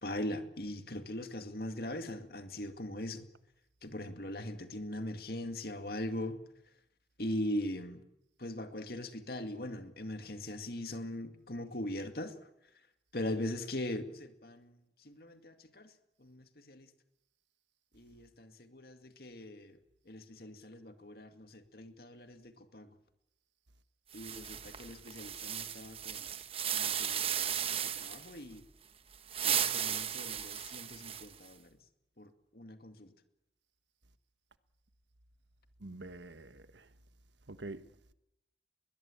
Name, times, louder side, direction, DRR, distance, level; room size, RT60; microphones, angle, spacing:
voice 1, 0.0-3.3 3.8-6.4 7.2-8.0 8.4-12.3 13.1-14.7 15.0-15.9 16.2-16.9 17.9-19.8 20.1-22.9 24.1-26.4 26.7-28.6 29.4-31.7 32.2-33.1, left 1 dB, 55° left, 2.3 m, -40 dB
sound 1, 24.1-28.3 29.1-31.5, right 9 dB, 30° right, 1.2 m, -35 dB
voice 2, 35.8-36.9 37.5-37.9, right 2 dB, 80° right, 1.3 m, -46 dB
22.0 x 20.5 x 8.6 m
head